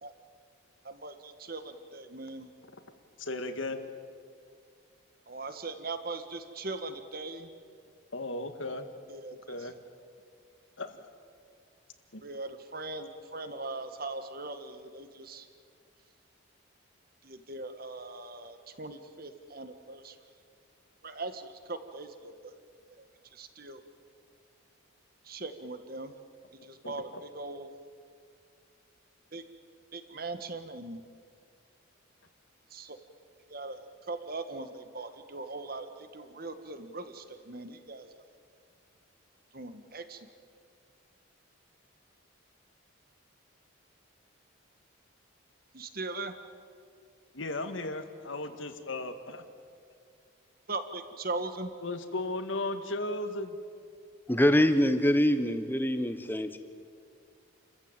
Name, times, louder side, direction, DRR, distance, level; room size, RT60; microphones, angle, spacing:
voice 1, 0.8-2.5 5.3-7.5 9.1-9.3 12.2-15.4 17.2-20.1 21.0-22.3 23.4-23.8 25.3-26.1 26.7-27.1 27.3-27.7 29.3-29.4 29.9-31.0 32.7-33.0 33.5-38.1 39.5-40.2 45.7-46.3 50.7-51.7, right 3 dB, 45° right, 9 dB, 1.6 m, -40 dB
voice 2, 3.2-3.8 8.1-8.9 9.3-9.8 10.8-11.0 12.1-12.2 26.4-27.2 47.3-49.4 51.8-53.6, left 2 dB, 70° left, 8 dB, 1.9 m, -36 dB
voice 3, 54.3-56.6, equal, 10° left, 9 dB, 1.1 m, -24 dB
29.5 x 14.5 x 9.0 m, 2.2 s
head